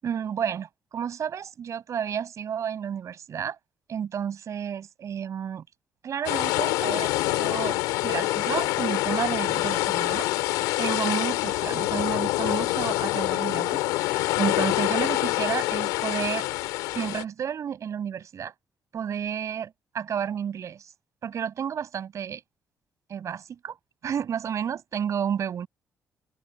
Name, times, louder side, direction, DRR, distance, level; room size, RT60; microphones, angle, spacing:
voice 1, 0.0-3.6 3.9-5.6 6.0-10.3 10.8-16.5 16.9-18.5 18.9-20.9 21.2-22.4 23.1-23.8 24.0-25.7, right 8 dB, 60° right, 7.8 m, -31 dB
sound 1, 6.2-17.2, left 20 dB, 85° left, 3.9 m, -26 dB
open air
supercardioid pair, 55°, 6 cm